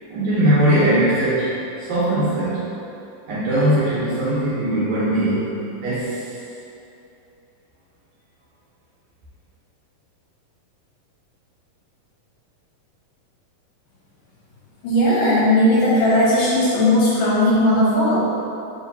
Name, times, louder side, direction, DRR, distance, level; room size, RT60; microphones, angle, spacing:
voice 1, 0.1-1.5 1.9-2.6 3.3-5.5 5.8-6.2, right 1 dB, 70° right, -11 dB, 2.1 m, -20 dB
voice 2, 14.8-18.2, left 1 dB, 75° left, -9 dB, 2.1 m, -17 dB
5.1 x 2.8 x 2.6 m, 2.8 s
omnidirectional pair, 4.0 m